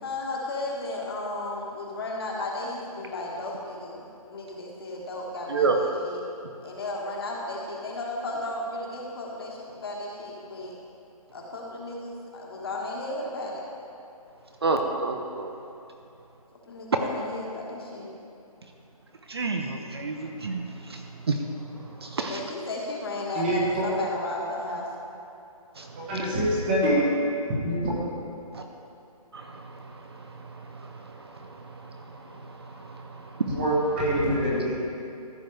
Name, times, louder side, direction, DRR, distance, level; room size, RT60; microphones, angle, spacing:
voice 1, 0.0-6.2 6.6-10.7 11.3-13.6 16.6-18.1 22.3-24.9, left 2 dB, 40° left, -2 dB, 1.6 m, -34 dB
voice 2, 14.6-15.5 19.3-21.4 21.7-22.4 25.8-26.4 28.5-28.6 29.3-33.6, right 4 dB, 40° right, 4 dB, 0.6 m, -31 dB
voice 3, 23.3-23.8 26.0-27.0 27.6-28.0 33.5-34.8, right 1 dB, 15° right, -5 dB, 1.2 m, -25 dB
14.0 x 6.4 x 3.3 m, 2.7 s
hypercardioid pair, 175°, 19 cm